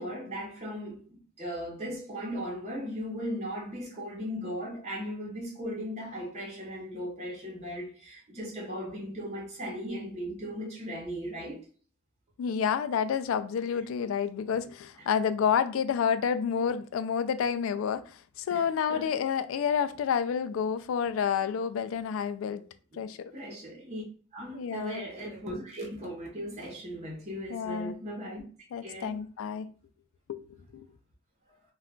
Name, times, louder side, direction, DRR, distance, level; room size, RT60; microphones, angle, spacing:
voice 1, 0.0-11.6 18.5-19.1 22.9-23.0 23.3-24.0 24.3-28.4 28.8-29.2, equal, 35° right, 0.8 m, -37 dB
voice 2, 12.4-22.6 23.0-23.3 24.5-25.0 27.5-27.9 28.7-29.7 30.3-30.4 30.7-30.8, left 7 dB, 75° left, 0.3 m, -29 dB
2.3 x 2.2 x 3.6 m
head